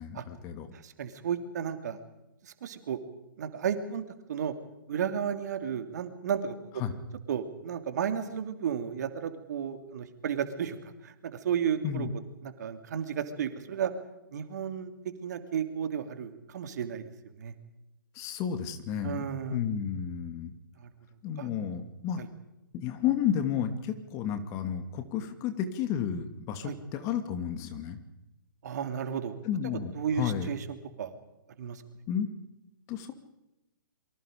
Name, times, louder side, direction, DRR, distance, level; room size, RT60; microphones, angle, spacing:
voice 1, 0.0-0.7 6.8-6.9 11.8-12.1 18.1-20.5 21.2-22.3 22.7-28.0 29.4-30.5 32.1-32.3 32.9-33.1, left 8 dB, 30° left, 8 dB, 2.5 m, -32 dB
voice 2, 0.7-2.0 2.4-3.0 3.4-4.0 4.3-4.5 4.9-6.6 7.3-12.1 12.4-13.9 14.3-14.9 15.2-17.1 17.4-17.5 19.0-19.6 20.8-20.9 21.4-21.5 22.2-22.3 26.6-26.7 28.6-29.4 29.6-31.1 31.6-31.8, right 8 dB, 55° right, 8 dB, 2.7 m, -33 dB
27.5 x 24.0 x 5.2 m, 0.95 s
figure-of-eight pair, 125°, 11 cm